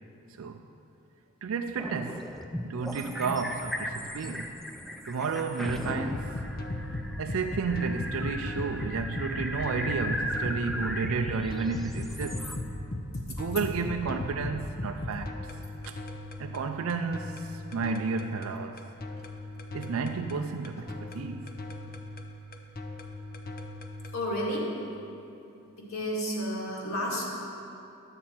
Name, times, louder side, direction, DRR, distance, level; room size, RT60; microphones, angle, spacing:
voice 1, 1.4-2.2 2.6-4.6 5.1-6.3 7.2-12.4 13.3-15.3 15.8-16.0 16.4-18.8 19.7-21.5, right 4 dB, 65° right, 5 dB, 0.4 m, -32 dB
sound 1, 1.8-12.6, equal, ahead, 0.4 m, -38 dB
sound 2, 5.6-24.2, left 2 dB, 45° left, 0.7 m, -37 dB
voice 2, 24.1-24.7 25.8-27.2, equal, 70° left, -4 dB, 2.0 m, -31 dB
11.5 x 7.5 x 4.4 m, 2.7 s
head